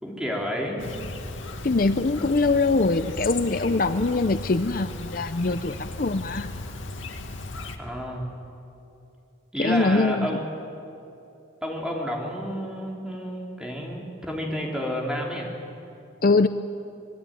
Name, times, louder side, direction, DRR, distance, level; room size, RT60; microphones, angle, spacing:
voice 1, 0.0-0.9 7.8-8.4 9.5-10.4 11.6-15.6, equal, 5° right, -1 dB, 3.9 m, -30 dB
Chirp tweet, 0.8-7.8, left 2 dB, 90° left, 2.2 m, -36 dB
voice 2, 1.6-6.5 9.6-10.3 16.2-16.5, left 3 dB, 45° left, 11 dB, 0.6 m, -23 dB
26.0 x 20.5 x 9.3 m, 2.8 s
head